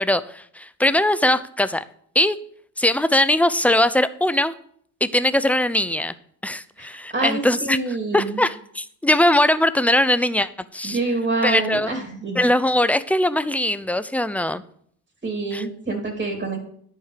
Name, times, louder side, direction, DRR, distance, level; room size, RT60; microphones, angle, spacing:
voice 1, 0.0-1.8 2.1-2.4 2.8-4.5 5.0-6.1 6.4-11.0 11.4-11.9 12.4-14.6 15.5-15.7, left 1 dB, 5° left, 14 dB, 0.6 m, -21 dB
voice 2, 6.8-8.4 10.8-12.4 15.2-16.6, right 2 dB, 25° right, 1 dB, 3.1 m, -26 dB
10.5 x 4.6 x 6.7 m, 0.64 s
supercardioid pair, 60°, 40 cm